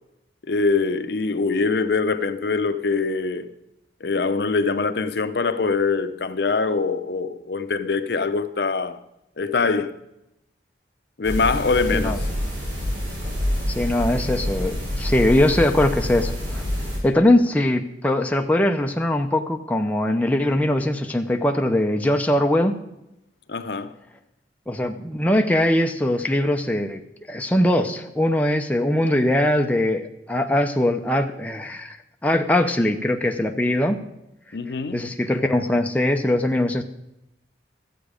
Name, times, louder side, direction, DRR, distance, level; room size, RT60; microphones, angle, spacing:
voice 1, 0.5-3.5 4.0-9.0 9.4-10.0 11.2-12.2 23.5-23.9 34.5-35.1, left 4 dB, 60° left, 0.6 m, -23 dB
sound 1, 11.2-17.0, equal, 90° right, 5.3 m, -27 dB
voice 2, 13.8-16.6 17.0-22.7 24.7-27.0 27.3-32.0 32.2-34.0 34.9-36.8, left 1 dB, 10° left, 0.6 m, -21 dB
13.5 x 8.1 x 5.0 m
head